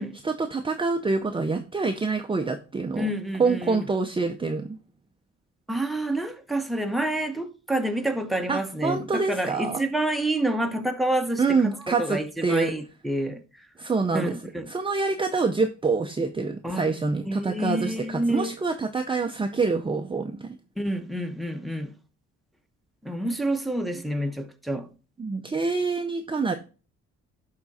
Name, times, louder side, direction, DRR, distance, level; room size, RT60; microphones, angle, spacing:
voice 1, 0.2-3.1 3.4-4.8 8.5-9.8 11.4-12.7 13.8-14.4 14.7-20.6 25.2-26.5, right 4 dB, 15° right, 0.6 m, -26 dB
voice 2, 3.0-3.8 5.7-13.4 14.1-14.6 16.6-16.8 17.3-18.6 20.8-21.9 23.0-24.9, right 1 dB, ahead, 1.0 m, -28 dB
11.0 x 3.7 x 4.1 m
cardioid pair, 90°, 30 cm